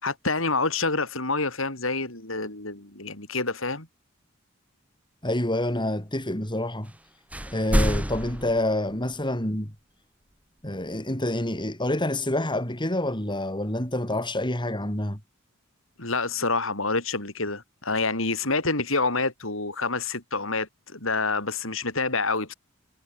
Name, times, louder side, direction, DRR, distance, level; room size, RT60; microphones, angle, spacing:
voice 1, 0.0-3.9 16.0-22.5, left 3 dB, 70° left, 7.4 m, -27 dB
voice 2, 5.2-6.9 7.5-9.7 10.6-15.2, left 1 dB, 25° left, 7.4 m, -27 dB
sound 1, 6.8-7.0 7.3-9.4, equal, 5° right, 2.4 m, -28 dB
head